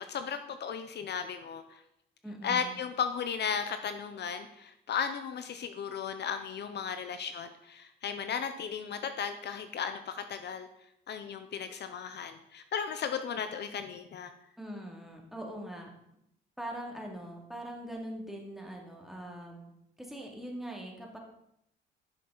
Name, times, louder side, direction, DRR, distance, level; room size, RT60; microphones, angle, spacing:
voice 1, 0.0-1.8 2.4-10.7 11.1-14.3, left 7 dB, 60° left, 9 dB, 0.8 m, -35 dB
voice 2, 2.2-2.7 14.6-15.9 16.6-19.7 20.0-21.2, right 1 dB, ahead, 0 dB, 2.4 m, -42 dB
11.5 x 6.5 x 4.0 m, 0.79 s
cardioid pair, 90°, 20 cm